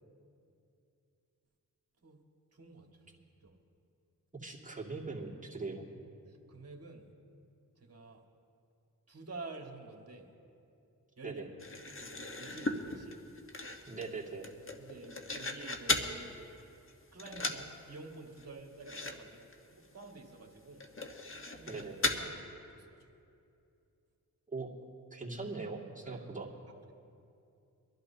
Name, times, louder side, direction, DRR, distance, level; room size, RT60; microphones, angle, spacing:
voice 1, 2.5-3.5 6.3-7.1 7.8-8.2 9.1-10.3 11.2-11.4 12.0-13.2 14.8-16.4 17.1-19.4 19.7-20.9 21.5-21.8 22.1-23.0 26.0-26.2 26.7-26.9, right 3 dB, 45° right, 1 dB, 2.0 m, -50 dB
voice 2, 4.4-5.9 11.2-11.5 13.9-14.5 21.7-22.0 24.5-24.7 25.1-26.5, right 3 dB, 20° right, -3 dB, 2.4 m, -41 dB
sound 1, 11.6-16.2 16.6-16.9 17.2-17.7 18.0-18.1 18.4-18.5 18.8-19.2 19.4-19.5 20.0-20.1 20.8-22.2, left 2 dB, 35° left, 1.4 m, -37 dB
24.5 x 11.5 x 2.9 m, 2.6 s
cardioid pair, 55°, 35 cm